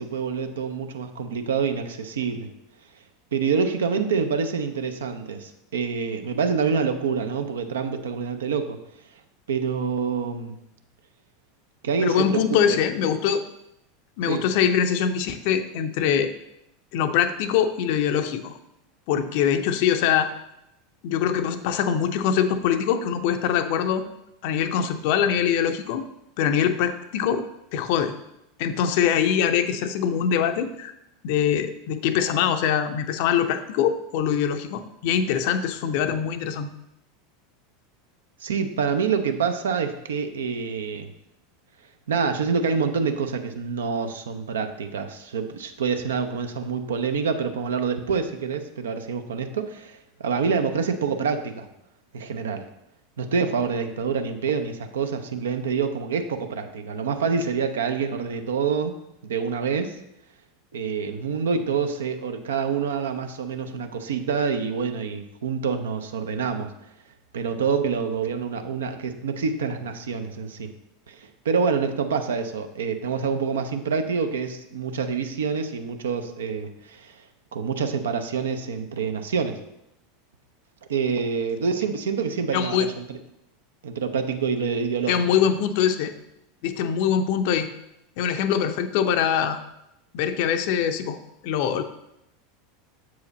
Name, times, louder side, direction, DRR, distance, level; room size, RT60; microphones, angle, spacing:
voice 1, 0.0-2.5 3.3-8.8 9.5-10.6 11.8-12.4 12.7-12.8 14.3-14.4 38.4-41.1 42.1-51.7 52.1-52.7 53.2-59.0 59.2-60.0 60.7-66.7 67.3-70.7 71.1-77.2 77.5-79.6 80.9-83.2 83.8-85.2, right 5 dB, 65° right, 8 dB, 0.6 m, -26 dB
voice 2, 12.0-13.4 14.2-16.3 16.9-18.6 19.1-20.3 21.0-24.0 24.4-26.0 26.4-27.4 27.7-28.1 28.6-30.9 31.2-36.7 82.5-82.9 85.1-86.1 86.6-87.7 88.2-89.6 90.1-91.2 91.4-91.8, left 8 dB, 50° left, 9 dB, 0.5 m, -23 dB
7.1 x 4.8 x 4.0 m, 0.84 s
figure-of-eight pair, 80°, 0 cm